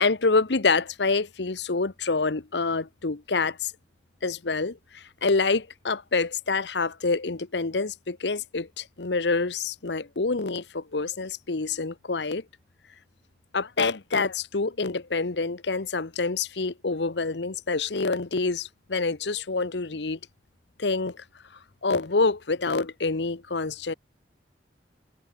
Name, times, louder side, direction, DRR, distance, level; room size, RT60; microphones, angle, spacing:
voice 1, 0.0-3.7 4.2-12.4 13.5-20.2 20.8-21.2 21.8-23.9, left 4 dB, 70° left, 1.0 m, -27 dB
head